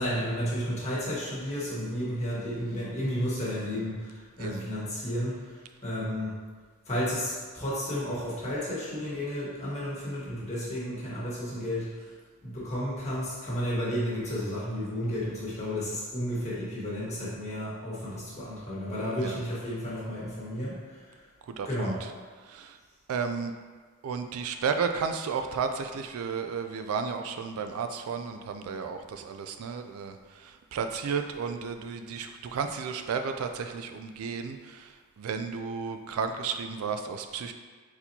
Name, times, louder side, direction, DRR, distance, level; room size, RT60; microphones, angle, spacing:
voice 1, 0.0-6.3 6.8-12.1 12.4-21.2 21.6-22.0, equal, 30° left, -8 dB, 1.5 m, -32 dB
voice 2, 21.5-21.9 22.5-22.8 23.1-23.5 24.0-37.5, right 5 dB, 70° right, 7 dB, 0.3 m, -33 dB
4.3 x 4.2 x 2.7 m, 1.5 s
head